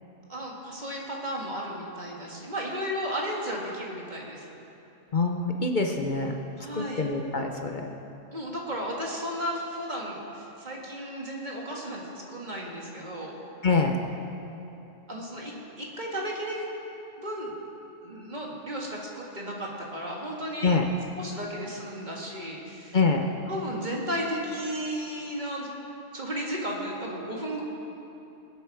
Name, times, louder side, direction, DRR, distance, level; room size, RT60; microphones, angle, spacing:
voice 1, 0.3-4.4 6.6-7.1 8.3-13.3 15.1-16.7 17.2-17.5 18.0-20.8 21.2-23.0 23.5-25.7 26.1-27.6, equal, 35° right, -2 dB, 1.9 m, -34 dB
voice 2, 5.1-6.4 6.7-7.8 13.6-14.0 20.6-20.8 22.9-23.2, left 4 dB, 45° left, 3 dB, 0.8 m, -25 dB
20.0 x 8.2 x 4.8 m, 2.9 s
omnidirectional pair, 1.4 m